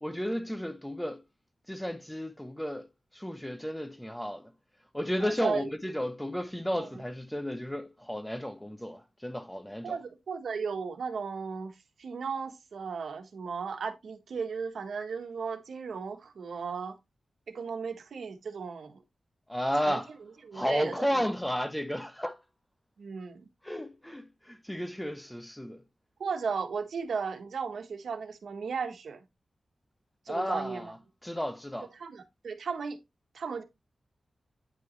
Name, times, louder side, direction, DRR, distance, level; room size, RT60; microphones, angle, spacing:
voice 1, 0.0-1.2 1.7-2.9 3.1-4.5 4.9-9.9 19.5-20.1 20.5-22.4 23.6-25.8 30.3-31.0 31.2-31.9, equal, 5° left, 0.8 m, -33 dB
voice 2, 5.2-5.7 6.7-7.0 9.8-17.0 17.5-19.0 19.9-20.0 20.4-20.9 23.0-23.5 26.2-29.2 30.2-30.9 32.0-33.0 33.3-33.6, right 5 dB, 90° right, 1.4 m, -35 dB
9.5 x 5.1 x 3.2 m
wide cardioid pair, 130°, 0 cm